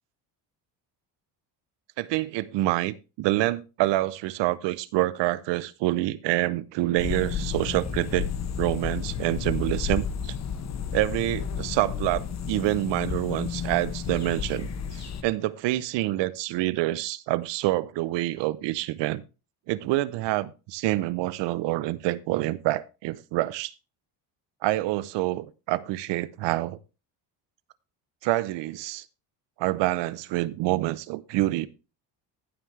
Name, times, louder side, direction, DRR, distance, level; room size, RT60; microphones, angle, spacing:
voice 1, 2.0-8.3 8.6-10.3 10.9-19.2 19.7-23.7 24.6-26.8 28.2-29.1 29.6-31.7, right 17 dB, 70° right, 0.8 m, -27 dB
sound 1, 7.0-15.2, left 7 dB, 35° left, 1.2 m, -32 dB
16.5 x 5.7 x 3.2 m
cardioid pair, 105°, 44 cm